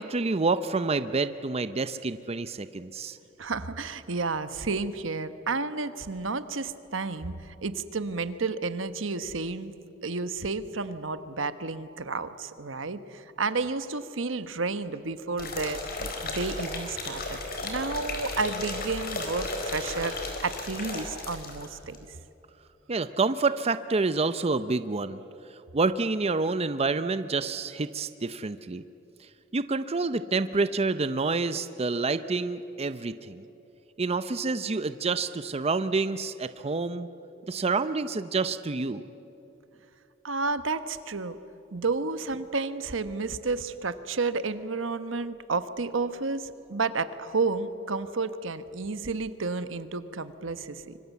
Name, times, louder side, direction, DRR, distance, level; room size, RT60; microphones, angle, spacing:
voice 1, 0.0-3.2 22.9-25.2 25.7-28.8 29.5-33.4 34.0-37.1 37.5-39.0, right 3 dB, 30° right, 12 dB, 0.6 m, -28 dB
voice 2, 3.4-9.7 10.0-22.0 40.2-41.4 41.7-51.0, right 3 dB, 80° right, 12 dB, 1.1 m, -31 dB
sound 1, 15.4-21.7 21.9-22.0, left 2 dB, 50° left, 4.3 m, -34 dB
25.0 x 25.0 x 8.3 m, 2.9 s
head